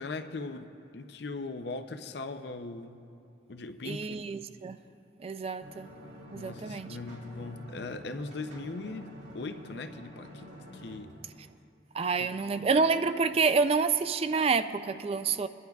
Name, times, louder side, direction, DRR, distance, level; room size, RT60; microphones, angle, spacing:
voice 1, 0.0-3.0 3.5-4.2 6.3-9.1 9.3-11.1 12.2-12.5, left 3 dB, 60° left, 8 dB, 0.5 m, -40 dB
voice 2, 3.8-4.8 5.2-5.9 6.3-6.9 11.9-15.5, right 4 dB, 30° right, 11 dB, 0.3 m, -28 dB
sound 1, 5.6-11.0, equal, 70° right, 2.6 m, -48 dB
sound 2, 6.9-7.6 8.1-9.4 9.8-9.9 10.2-11.4, right 1 dB, 85° right, 2.3 m, -57 dB
23.5 x 11.0 x 2.4 m, 2.6 s
head